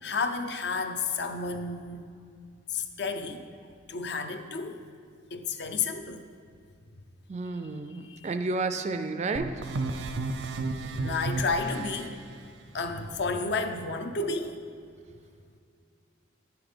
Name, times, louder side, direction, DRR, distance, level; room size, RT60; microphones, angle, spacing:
voice 1, 0.0-2.0 2.7-3.5 3.9-4.9 5.3-6.3 8.0-8.3 10.9-12.1 12.7-14.6, left 4 dB, 60° left, 7 dB, 0.6 m, -31 dB
voice 2, 7.3-9.5, right 3 dB, 35° right, 9 dB, 0.4 m, -31 dB
sound 1, 9.3-12.1, right 3 dB, 80° right, 0.6 m, -32 dB
9.4 x 6.0 x 5.0 m, 2.3 s
head